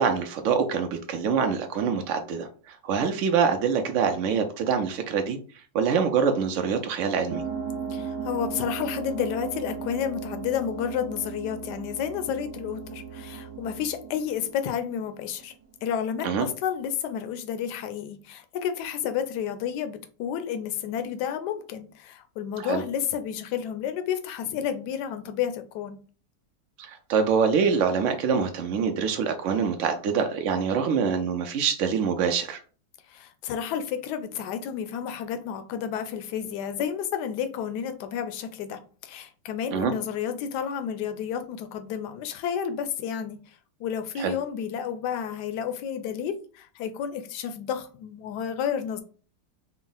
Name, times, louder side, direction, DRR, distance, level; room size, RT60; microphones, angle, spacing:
voice 1, 0.0-5.4 5.7-7.4 16.2-16.4 22.6-22.8 26.8-32.6 39.7-39.9 44.2-44.3, right 6 dB, 85° right, 0.6 m, -25 dB
sound 1, 7.3-15.4, right 6 dB, 65° right, 1.3 m, -36 dB
voice 2, 7.9-15.5 15.8-26.0 33.1-43.4 43.8-49.0, left 8 dB, 75° left, 1.1 m, -31 dB
4.4 x 2.0 x 3.9 m
omnidirectional pair, 1.9 m